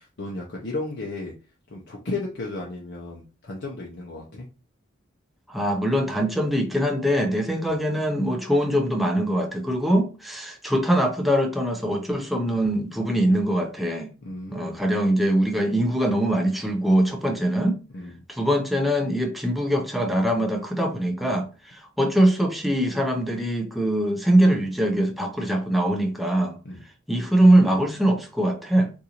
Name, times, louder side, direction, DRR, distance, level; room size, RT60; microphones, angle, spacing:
voice 1, 0.0-1.3 1.7-4.5 7.6-7.7 14.2-14.8 17.9-18.2 26.6-26.8, left 2 dB, 60° left, 0.6 m, -34 dB
voice 2, 5.5-14.1 14.5-17.8 18.3-26.6 27.1-28.9, right 1 dB, ahead, 0.5 m, -22 dB
3.8 x 2.6 x 2.9 m
head